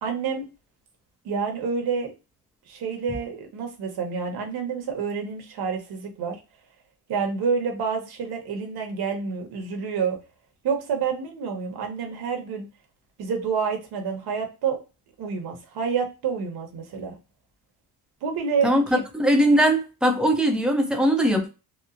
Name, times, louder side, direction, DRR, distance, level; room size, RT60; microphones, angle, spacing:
voice 1, 0.0-0.5 1.2-2.1 2.7-6.4 7.1-10.2 10.6-12.7 13.2-14.8 15.2-17.2 18.2-18.7, right 6 dB, 70° right, 1.0 m, -28 dB
voice 2, 18.6-21.5, equal, ahead, 0.6 m, -20 dB
3.0 x 2.0 x 2.5 m
cardioid pair, 115°, 40 cm